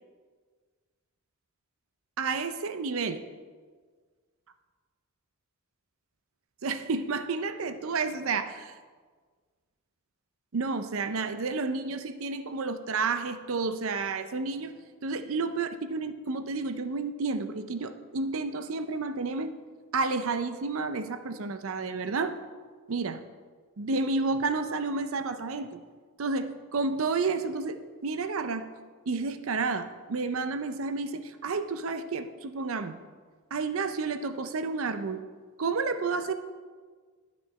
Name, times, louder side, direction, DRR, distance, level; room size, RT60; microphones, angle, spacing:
voice 1, 2.2-3.2 6.6-8.7 10.5-14.7 15.0-19.5 19.9-22.3 22.9-23.2 23.8-25.8 26.2-28.7 29.1-33.0 33.5-35.2 35.6-36.3, right 4 dB, 70° right, 10 dB, 0.6 m, -30 dB
12.0 x 6.2 x 4.2 m, 1.5 s
head